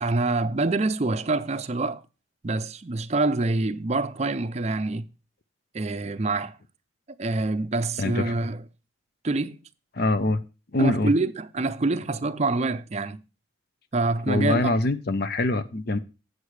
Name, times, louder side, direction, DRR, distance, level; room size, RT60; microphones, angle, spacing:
voice 1, 0.0-2.0 2.4-5.0 5.7-6.6 7.2-8.6 9.2-9.6 10.8-13.2 13.9-14.7, right 2 dB, 35° right, 0.5 m, -26 dB
voice 2, 8.0-8.3 9.9-10.4 10.7-11.1 14.3-16.0, left 2 dB, 50° left, 0.6 m, -24 dB
8.4 x 8.0 x 4.7 m
head